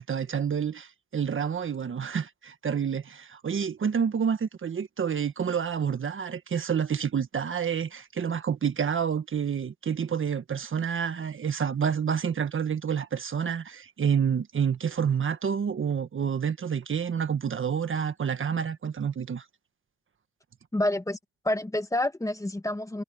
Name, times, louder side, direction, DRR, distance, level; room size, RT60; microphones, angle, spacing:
voice 1, 0.0-19.4, right 7 dB, 40° right, 1.6 m, -28 dB
voice 2, 20.7-21.2 21.4-23.0, left 1 dB, 10° left, 1.8 m, -28 dB
cardioid pair, 90°, 30 cm